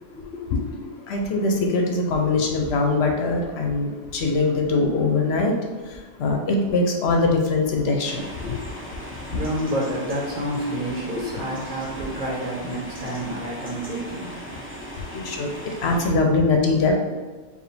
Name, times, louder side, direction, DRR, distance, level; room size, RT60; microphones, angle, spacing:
voice 1, 1.1-3.9 4.1-5.5 6.2-8.5 15.1-15.5 15.8-16.9, left 3 dB, 70° left, 2 dB, 0.9 m, -22 dB
sound 1, 8.0-16.1, equal, 15° right, 0.6 m, -38 dB
voice 2, 8.5-14.7, right 1 dB, 45° right, -4 dB, 1.0 m, -29 dB
4.8 x 2.4 x 3.3 m, 1.4 s
omnidirectional pair, 1.2 m